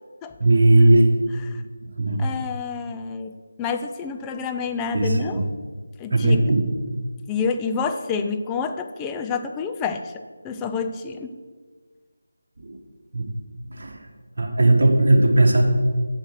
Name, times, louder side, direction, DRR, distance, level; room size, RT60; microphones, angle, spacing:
voice 1, 0.4-1.0 2.0-2.2 4.9-5.4 6.1-6.7 12.7-12.8 13.1-13.2 13.7-14.0 14.4-15.6, right 2 dB, 50° right, 1 dB, 1.6 m, -17 dB
voice 2, 2.2-3.3 3.6-5.4 6.0-6.5 7.3-11.3, left 5 dB, 10° left, 6 dB, 0.4 m, -28 dB
7.8 x 6.3 x 6.4 m, 1.5 s
figure-of-eight pair, 160°, 0 cm